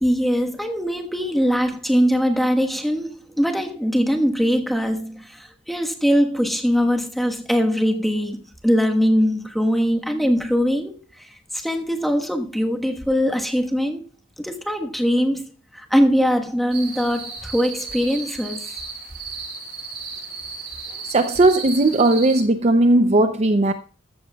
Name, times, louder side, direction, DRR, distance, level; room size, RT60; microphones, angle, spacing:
voice 1, 0.0-10.9 11.5-14.1 14.4-15.4 15.7-18.6, equal, ahead, 1.3 m, -21 dB
sound 1, 16.7-22.4, right 4 dB, 60° right, 5.7 m, -35 dB
voice 2, 21.1-23.7, right 2 dB, 35° right, 0.6 m, -17 dB
14.0 x 13.0 x 2.3 m
head